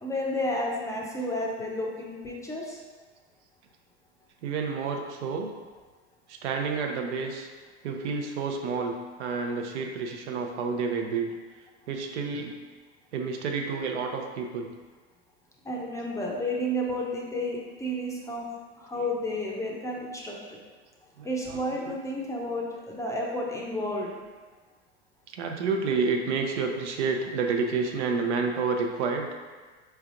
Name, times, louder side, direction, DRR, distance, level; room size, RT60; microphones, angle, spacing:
voice 1, 0.0-2.8 15.6-18.5 18.8-20.6 21.2-24.2, left 1 dB, 10° left, -2 dB, 0.5 m, -31 dB
voice 2, 4.4-5.5 6.4-7.5 7.8-8.9 9.2-11.3 11.9-12.5 13.1-14.7 21.2-21.9 25.4-29.3, right 4 dB, 85° right, 3 dB, 0.6 m, -29 dB
4.5 x 3.3 x 2.5 m, 1.4 s
supercardioid pair, 110°, 34 cm